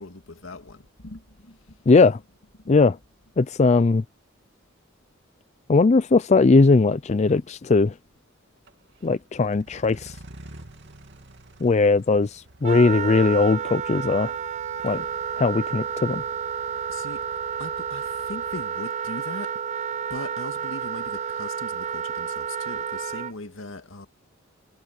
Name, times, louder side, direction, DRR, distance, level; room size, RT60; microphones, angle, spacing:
voice 1, 0.0-1.8 2.6-2.7 14.8-14.9 16.9-17.3 17.6-19.6 20.1-24.1, left 2 dB, 80° left, 2.1 m, -40 dB
voice 2, 1.9-2.2 2.7-3.0 3.4-4.0 5.7-7.9 9.0-10.2 11.6-14.3 14.8-15.1 15.4-16.2, left 3 dB, 35° left, 0.4 m, -19 dB
sound 1, 6.0-6.1 8.6-18.6, right 1 dB, 60° right, 2.7 m, -50 dB
Wind instrument woodwind instrument, 12.6-23.3, right 7 dB, 35° right, 0.3 m, -30 dB
head